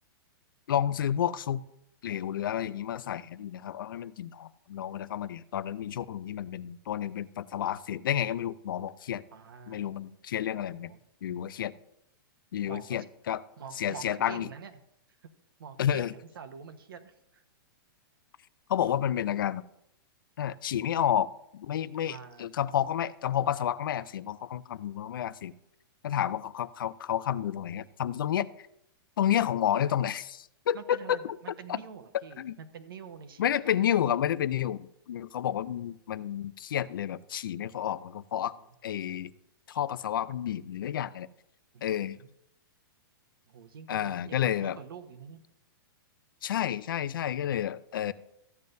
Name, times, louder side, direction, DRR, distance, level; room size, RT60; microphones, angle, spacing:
voice 1, 0.7-1.6 2.0-9.2 9.7-10.9 11.2-11.7 12.5-13.4 13.8-14.5 15.8-16.1 18.7-19.6 20.4-25.5 26.0-28.7 29.2-31.4 31.7-31.8 32.4-32.6 33.4-38.5 38.8-39.3 39.7-41.3 41.8-42.2 43.9-44.8 46.4-48.1, left 10 dB, 65° left, 17 dB, 0.5 m, -30 dB
voice 2, 9.3-10.2 10.7-11.0 12.7-13.1 13.6-14.7 15.2-15.3 15.6-17.4 21.9-22.5 30.7-33.8 34.0-34.1 38.4-38.6 41.7-42.3 43.5-45.4, right 6 dB, 70° right, 8 dB, 1.2 m, -46 dB
14.5 x 9.4 x 2.7 m, 0.79 s
hypercardioid pair, 175°, 12 cm